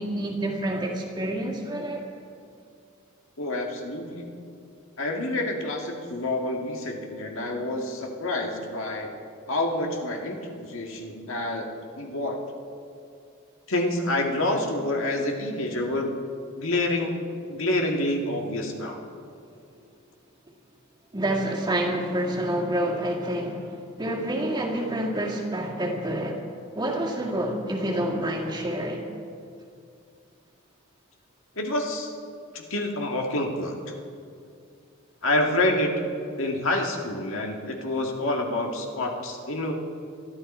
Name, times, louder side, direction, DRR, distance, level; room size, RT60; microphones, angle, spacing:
voice 1, 0.0-2.0 21.1-26.4 26.8-29.1, right 1 dB, 20° right, -1 dB, 2.0 m, -28 dB
voice 2, 3.4-4.3 5.0-9.1 9.5-11.7 12.0-12.4 13.7-16.2 16.6-17.1 17.5-19.0 31.6-32.1 32.5-33.7 35.2-35.9 36.4-39.7, left 1 dB, 65° left, 1 dB, 1.9 m, -27 dB
22.0 x 13.5 x 4.3 m, 2.4 s
head